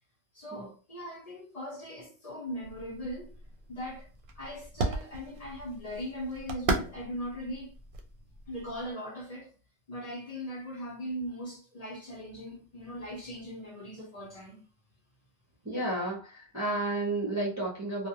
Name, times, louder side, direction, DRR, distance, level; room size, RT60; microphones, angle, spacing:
voice 1, 0.3-3.3 3.7-4.1 4.3-7.7 8.5-9.5 9.9-14.7, equal, 40° left, 0.7 m, -39 dB
sound 1, 2.6-8.9, right 3 dB, 65° right, 0.7 m, -37 dB
voice 2, 15.6-18.1, right 2 dB, 20° right, 0.5 m, -31 dB
2.4 x 2.1 x 2.7 m
omnidirectional pair, 1.0 m